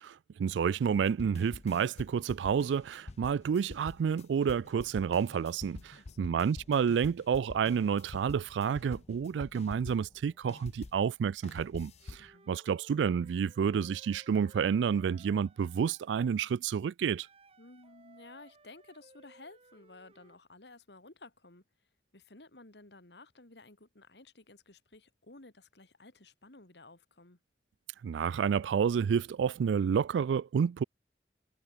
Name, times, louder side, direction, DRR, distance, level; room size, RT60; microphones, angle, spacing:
voice 1, 0.0-17.3 28.0-30.8, right 7 dB, 85° right, 0.3 m, -30 dB
sound 1, 0.8-11.0 11.4-12.3, left 2 dB, 40° left, 0.5 m, -47 dB
sound 2, 1.4-10.4, equal, 15° left, 3.6 m, -69 dB
voice 2, 6.0-6.4 12.2-12.5 17.6-21.6 22.1-27.4, left 2 dB, 70° left, 2.7 m, -54 dB
Wind instrument woodwind instrument, 12.0-16.1 17.0-20.4, right 3 dB, 35° right, 1.8 m, -61 dB
head